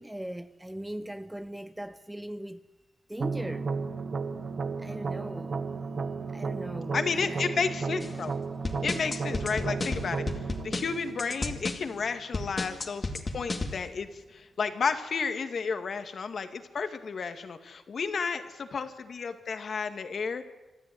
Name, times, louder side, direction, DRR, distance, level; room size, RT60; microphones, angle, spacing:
voice 1, 0.0-2.7 3.1-3.7 4.8-5.7 6.3-7.6, right 1 dB, 10° right, 0.8 m, -39 dB
sound 1, 3.2-12.2, right 4 dB, 50° right, 1.4 m, -34 dB
voice 2, 6.9-8.3 8.8-20.4, left 5 dB, 60° left, 2.0 m, -32 dB
sound 2, 8.0-8.2 8.7-11.8 12.3-13.8, left 2 dB, 35° left, 2.2 m, -33 dB
26.0 x 13.0 x 9.4 m
cardioid pair, 80°, 0 cm